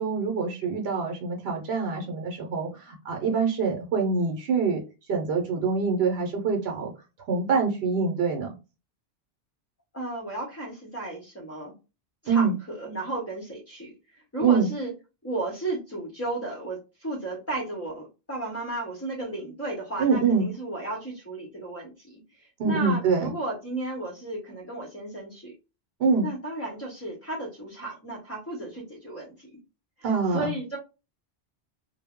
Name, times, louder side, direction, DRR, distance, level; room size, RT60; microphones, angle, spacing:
voice 1, 0.0-4.8 5.1-6.9 7.3-8.5 12.3-12.5 14.4-14.7 20.0-20.5 22.6-23.3 26.0-26.3 30.0-30.6, right 5 dB, 80° right, 2 dB, 0.9 m, -25 dB
voice 2, 9.9-11.7 12.2-14.9 15.2-25.5 26.2-29.5 30.0-30.8, right 2 dB, 15° left, -2 dB, 0.6 m, -34 dB
2.2 x 2.0 x 3.5 m, 0.29 s
omnidirectional pair, 1.1 m